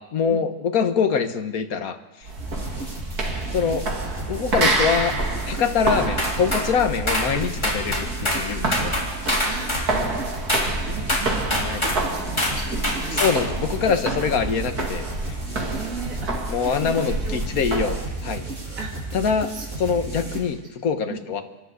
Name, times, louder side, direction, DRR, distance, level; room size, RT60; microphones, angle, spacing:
voice 1, 0.0-2.0 3.5-3.9 4.3-5.1 5.5-8.9 11.6-11.8 13.1-15.1 16.5-18.0 18.2-18.4 19.1-19.5 19.8-21.4, left 6 dB, 65° left, 8 dB, 1.7 m, -24 dB
sound 1, 2.2-18.0, right 2 dB, 75° right, 3.0 m, -28 dB
sound 2, 2.4-20.4, right 3 dB, 40° right, 8.0 m, -34 dB
sound 3, 6.2-6.7 7.1-7.3 7.6-8.5 8.7-9.9 10.5-10.7 11.1-12.0 12.4-12.6 12.8-13.4, left 1 dB, 15° left, 3.6 m, -24 dB
voice 2, 9.4-9.9 10.5-13.2 15.6-17.4 17.7-17.8 18.7-18.9 19.5-19.7 20.4-20.5 21.1-21.2, right 4 dB, 60° right, -2 dB, 2.8 m, -37 dB
26.5 x 12.0 x 8.1 m, 1.2 s
omnidirectional pair, 1.7 m